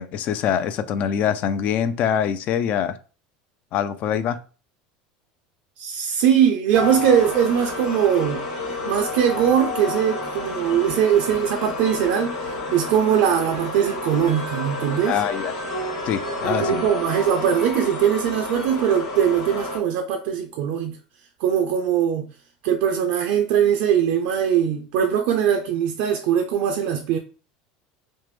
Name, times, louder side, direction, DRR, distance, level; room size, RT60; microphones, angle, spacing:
voice 1, 0.0-3.0 3.7-4.4 15.0-15.5 16.1-16.8, left 8 dB, 50° left, 0.3 m, -24 dB
voice 2, 5.8-15.2 16.4-21.0 21.4-22.3 22.6-27.2, right 9 dB, 70° right, 0.4 m, -21 dB
sound 1, 6.7-19.8, left 2 dB, 70° left, 1.2 m, -30 dB
3.2 x 2.1 x 3.2 m
supercardioid pair, 120°, 3 cm